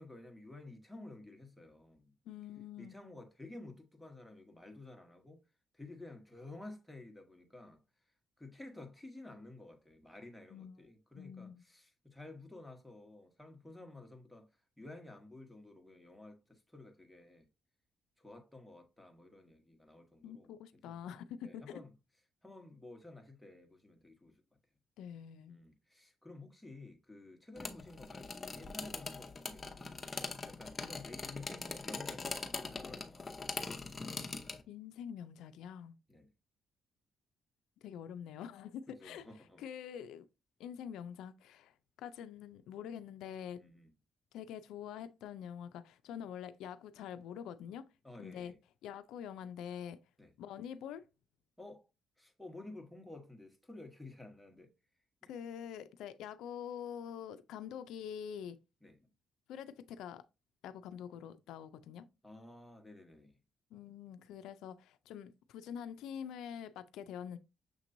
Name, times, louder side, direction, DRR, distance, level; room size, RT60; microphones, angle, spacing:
voice 1, 0.0-2.1 2.8-5.4 5.8-7.8 8.4-14.5 14.8-17.5 18.2-21.0 21.4-21.9 22.4-24.4 25.5-30.1 30.5-33.8 36.1-36.3 39.0-39.6 43.6-43.9 48.0-48.5 50.2-50.3 51.6-51.9 52.2-54.7 55.2-55.3 58.8-59.0 62.2-63.3, left 2 dB, 5° left, 1.0 m, -52 dB
voice 2, 2.3-3.0 10.5-10.8 11.1-11.6 20.2-21.8 25.0-25.6 34.7-36.0 37.8-39.3 39.6-40.3 40.6-43.6 44.3-47.8 48.2-48.5 48.8-50.0 50.4-51.0 55.3-58.6 59.5-60.2 60.6-62.1 63.7-67.4, left 8 dB, 85° left, 0.3 m, -45 dB
sound 1, 27.6-34.6, left 4 dB, 30° left, 0.7 m, -42 dB
6.6 x 2.9 x 2.6 m
cardioid pair, 90°, 0 cm